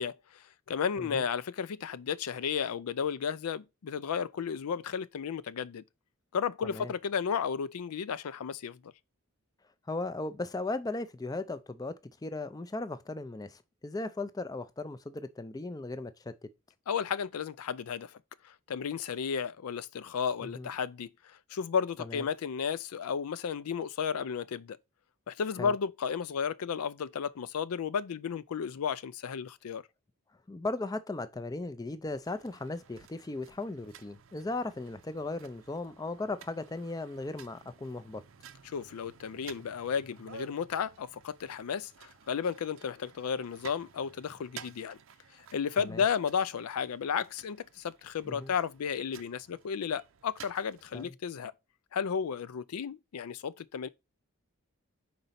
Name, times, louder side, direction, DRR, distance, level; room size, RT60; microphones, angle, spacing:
voice 1, 0.0-5.8 6.3-8.9 16.9-18.1 18.4-24.8 25.3-29.8 38.7-45.0 45.4-51.5 51.9-53.9, left 7 dB, 80° left, 0.4 m, -33 dB
voice 2, 9.9-16.3 20.4-20.7 22.0-22.2 25.6-25.7 30.5-38.2 45.8-46.0 48.2-48.5 50.9-51.1, left 2 dB, 15° left, 0.4 m, -37 dB
sound 1, 32.2-51.1, right 7 dB, 60° right, 0.5 m, -54 dB
5.2 x 4.0 x 5.6 m
head